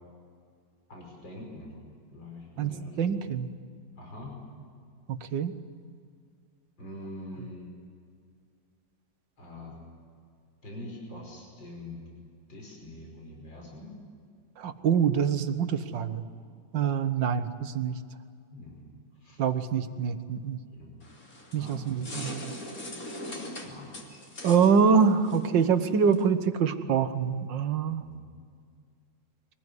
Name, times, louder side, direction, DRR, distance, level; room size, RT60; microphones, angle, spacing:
voice 1, 0.9-1.8 2.1-3.0 4.0-4.4 6.8-7.7 9.4-9.7 10.6-12.0 12.5-13.9 18.5-18.8 19.2-19.4 20.7-20.9 21.5-22.1 23.6-24.0 27.9-28.2, left 1 dB, 75° left, -1 dB, 6.0 m, -44 dB
voice 2, 2.6-3.5 5.1-5.5 14.6-16.2 16.7-17.9 19.4-20.6 21.5-22.5 24.4-28.0, right 6 dB, 75° right, 10 dB, 1.8 m, -25 dB
sound 1, 21.0-26.3, left 1 dB, 45° left, 3.5 m, -41 dB
23.5 x 20.0 x 9.7 m, 2.2 s
omnidirectional pair, 2.1 m